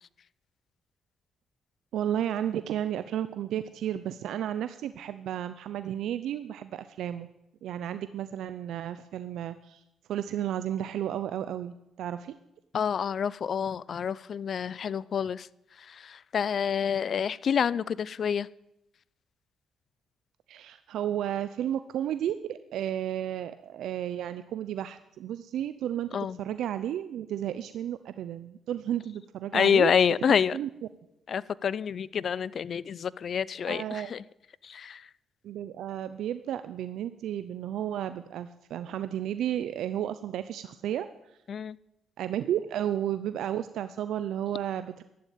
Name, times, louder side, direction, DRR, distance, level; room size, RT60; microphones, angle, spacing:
voice 1, 1.9-7.3 7.6-9.8 10.1-12.3 20.5-29.9 30.5-30.7 33.7-34.1 35.4-41.1 42.2-45.0, right 11 dB, 80° right, 12 dB, 0.6 m, -33 dB
voice 2, 12.7-15.5 15.8-18.5 26.1-26.4 29.5-30.6 31.3-34.2 34.6-35.1 41.5-41.8, left 7 dB, 55° left, 21 dB, 0.5 m, -28 dB
12.5 x 11.5 x 9.2 m, 0.85 s
cardioid pair, 90°, 0 cm